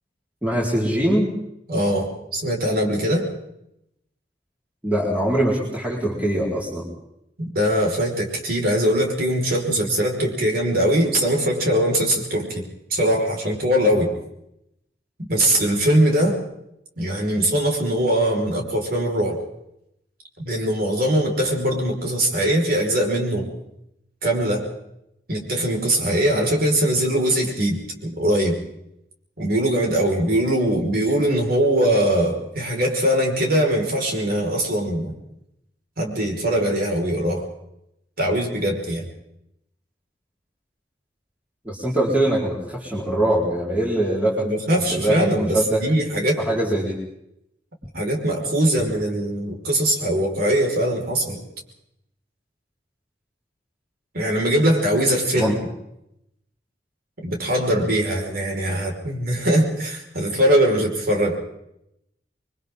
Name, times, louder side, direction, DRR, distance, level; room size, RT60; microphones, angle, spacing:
voice 1, 0.4-1.3 4.8-6.9 41.6-44.5 44.9-45.9 46.4-47.0 55.4-55.6, right 1 dB, 10° right, -5 dB, 4.5 m, -22 dB
voice 2, 1.7-3.3 7.5-12.6 12.9-14.1 15.3-16.4 17.0-19.4 20.4-23.5 24.2-24.7 25.3-28.5 29.4-35.1 36.0-37.4 38.2-39.1 44.4-46.4 47.9-51.4 54.1-55.6 57.2-61.4, right 1 dB, 60° right, 0 dB, 5.4 m, -21 dB
29.0 x 23.5 x 3.9 m, 0.80 s
head